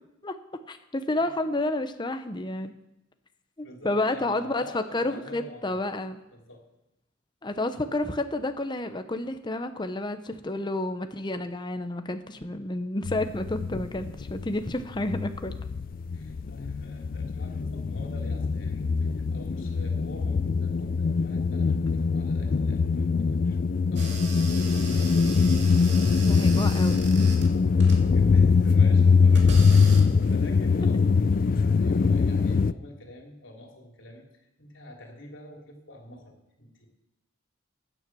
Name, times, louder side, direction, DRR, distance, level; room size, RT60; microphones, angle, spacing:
voice 1, 0.7-2.7 3.6-6.2 7.4-15.5 26.2-27.0, left 2 dB, 25° left, 8 dB, 0.8 m, -30 dB
voice 2, 3.6-5.9 6.3-6.6 16.1-24.3 24.9-25.4 26.0-26.8 27.8-36.9, left 1 dB, 80° left, 1 dB, 3.3 m, -47 dB
sound 1, 13.0-14.7 14.9-32.7, left 5 dB, 45° left, 0.4 m, -23 dB
sound 2, 24.0-30.6, right 3 dB, 60° right, 2.7 m, -40 dB
16.0 x 9.6 x 6.1 m, 0.91 s
head